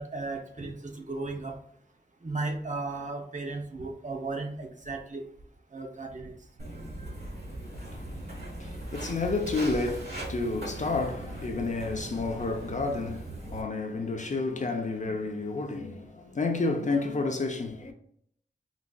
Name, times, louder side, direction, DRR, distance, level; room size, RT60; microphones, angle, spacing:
voice 1, 0.0-1.6 2.2-5.2 5.7-6.3, right 3 dB, 40° right, 0.6 m, -35 dB
Walk footsteps, 6.6-13.6, right 1 dB, 55° right, 1.0 m, -39 dB
voice 2, 7.7-17.9, left 3 dB, 40° left, 0.5 m, -31 dB
3.9 x 2.4 x 2.3 m
wide cardioid pair, 75°, 19 cm